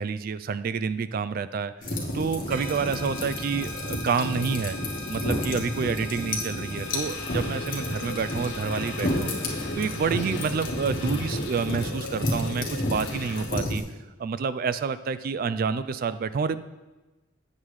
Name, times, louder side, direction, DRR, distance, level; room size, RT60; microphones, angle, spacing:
voice 1, 0.0-4.7 5.1-13.8 14.2-16.6, right 5 dB, 50° right, 14 dB, 0.3 m, -29 dB
sound 1, 1.8-13.8, left 1 dB, 45° left, 1.4 m, -31 dB
sound 2, 2.5-11.9, left 2 dB, 75° right, 1.6 m, -41 dB
sound 3, 6.8-13.5, left 3 dB, 65° left, 0.9 m, -40 dB
8.4 x 7.3 x 3.2 m, 1.1 s
head